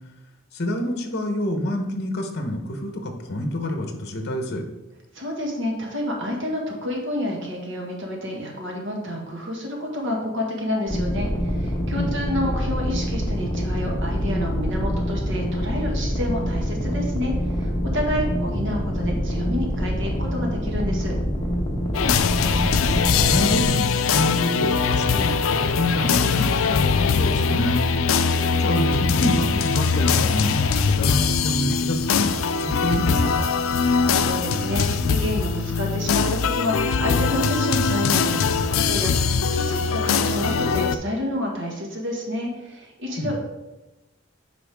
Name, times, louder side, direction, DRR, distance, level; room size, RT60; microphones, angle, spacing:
voice 1, 0.5-4.6 12.0-12.1 18.1-18.5 22.0-27.9 28.6-33.5 43.2-43.4, left 1 dB, 55° left, 4 dB, 1.0 m, -28 dB
voice 2, 5.1-21.2 33.8-43.4, left 1 dB, 65° right, 0 dB, 1.7 m, -29 dB
sound 1, 10.9-23.6, equal, 25° left, 1.2 m, -25 dB
sound 2, 21.9-41.0, left 5 dB, 85° left, 0.4 m, -22 dB
8.4 x 5.2 x 3.5 m, 1.0 s
head